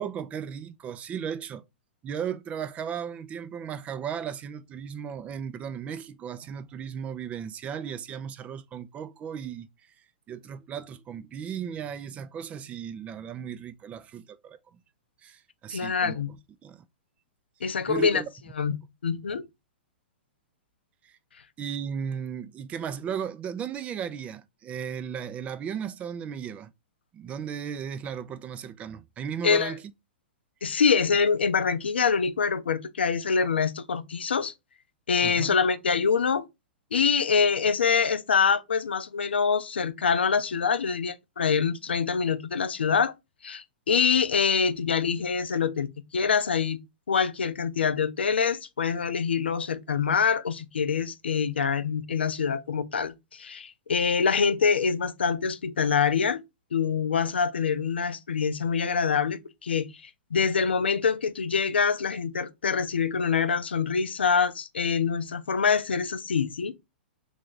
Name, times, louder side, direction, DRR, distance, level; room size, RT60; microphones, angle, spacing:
voice 1, 0.0-1.6 2.0-9.7 10.3-14.8 15.2-16.2 16.6-16.9 17.6-18.3 21.0-21.2 21.6-26.7 27.1-29.8 33.4-33.5 35.2-35.5, right 7 dB, 25° right, 0.4 m, -36 dB
voice 2, 15.7-16.3 17.6-18.2 18.6-18.8 19.0-19.5 29.4-29.7 30.6-34.5 35.1-36.4 36.9-43.1 43.4-45.9 46.1-46.8 47.1-56.4 56.7-66.7, left 6 dB, 85° left, 0.4 m, -25 dB
3.3 x 2.4 x 3.9 m
hypercardioid pair, 115°, 6 cm